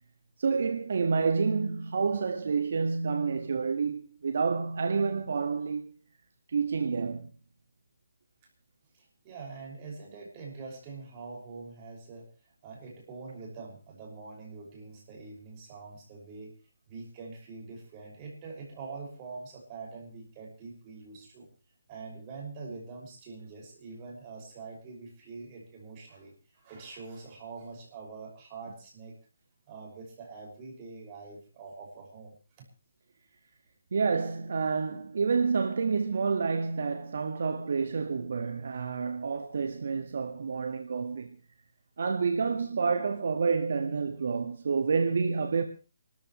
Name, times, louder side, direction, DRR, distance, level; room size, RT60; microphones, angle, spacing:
voice 1, 0.4-5.9 6.5-7.3 33.9-41.4 42.0-45.6, right 5 dB, 60° right, 1.6 m, -29 dB
voice 2, 8.9-12.3 12.6-16.5 16.9-21.5 21.9-29.2 29.7-32.7, right 4 dB, 25° right, 5.8 m, -44 dB
27.5 x 14.0 x 3.1 m
hypercardioid pair, 160°, 0 cm